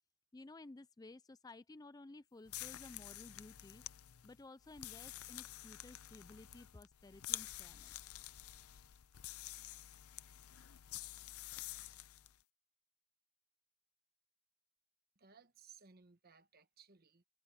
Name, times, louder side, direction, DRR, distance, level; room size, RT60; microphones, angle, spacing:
voice 1, 0.3-3.8 4.2-7.9, left 2 dB, 15° left, 0.4 m, -55 dB
sound 1, 2.4-12.3, left 15 dB, 75° left, 0.6 m, -49 dB
voice 2, 15.2-17.2, right 6 dB, 45° right, 1.2 m, -62 dB
head